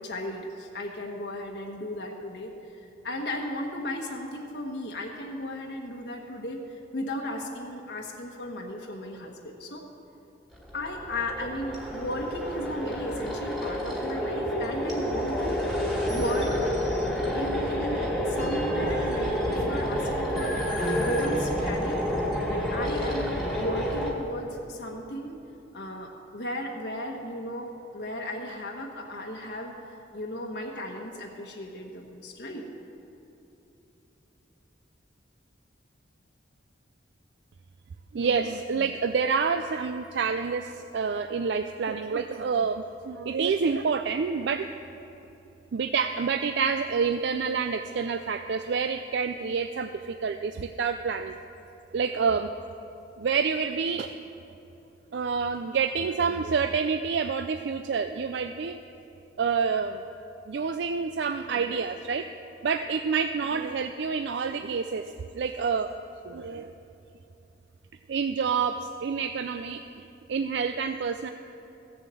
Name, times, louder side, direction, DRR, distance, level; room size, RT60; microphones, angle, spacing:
voice 1, 0.0-2.8 3.0-9.8 10.7-15.6 16.1-16.7 17.3-18.0 18.2-20.6 21.0-22.1 22.5-25.4 25.7-29.7 30.1-32.6, left 1 dB, 60° left, 0 dB, 1.2 m, -35 dB
sound 1, 10.5-24.1, equal, 5° right, 1.8 m, -29 dB
voice 2, 38.1-44.7 45.7-51.3 51.9-52.5 53.2-54.1 55.1-58.8 59.4-60.0 60.5-62.3 62.6-65.0 65.3-65.9 66.2-66.7 68.1-71.3, right 5 dB, 65° right, 8 dB, 0.4 m, -28 dB
15.5 x 7.1 x 7.6 m, 2.9 s
head